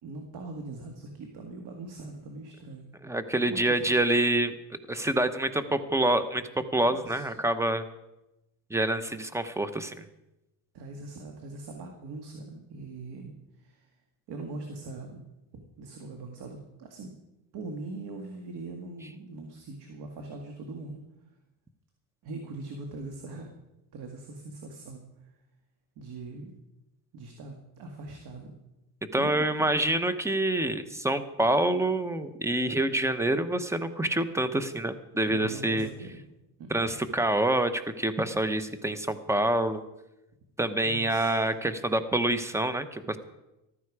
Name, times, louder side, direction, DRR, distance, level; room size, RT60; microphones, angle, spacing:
voice 1, 0.0-2.9 3.5-3.8 6.8-7.3 10.7-13.3 13.6-13.9 14.3-15.2 15.5-17.1 17.5-21.0 22.2-23.5 23.9-25.4 26.0-26.5 27.1-28.5 29.2-29.8 35.3-36.2 36.6-36.8 40.8-41.4, right 3 dB, 65° right, 3 dB, 2.0 m, -41 dB
voice 2, 3.0-4.5 4.9-7.8 8.7-9.9 29.1-35.9 36.7-39.8 40.6-43.2, right 1 dB, 5° right, 11 dB, 1.0 m, -27 dB
14.5 x 12.5 x 4.9 m, 0.94 s
cardioid pair, 110°, 42 cm